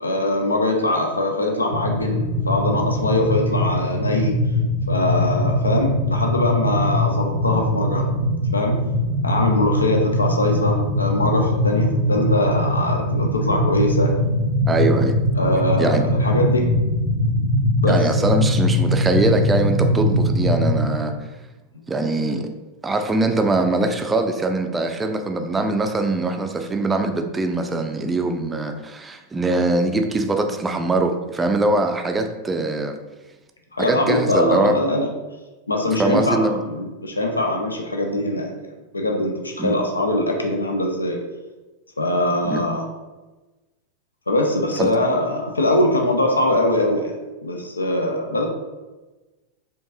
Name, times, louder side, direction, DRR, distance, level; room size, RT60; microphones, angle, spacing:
voice 1, 0.0-4.4 4.9-8.1 8.5-8.8 9.2-14.1 15.3-16.7 17.8-18.0 33.7-35.1 35.7-41.2 42.0-42.9 44.3-47.1 47.4-48.5, left 1 dB, 80° left, 2 dB, 0.5 m, -22 dB
sound 1, 1.7-20.8, left 1 dB, 90° right, 0.7 m, -21 dB
voice 2, 14.7-15.2 15.8-16.0 17.9-21.1 21.9-22.5 22.8-33.0 33.8-34.8 36.0-36.6 39.6-39.8 42.5-42.6 44.8-44.9, right 2 dB, 15° right, 5 dB, 0.4 m, -22 dB
4.4 x 2.6 x 2.8 m, 1.2 s
figure-of-eight pair, 90°, 0 cm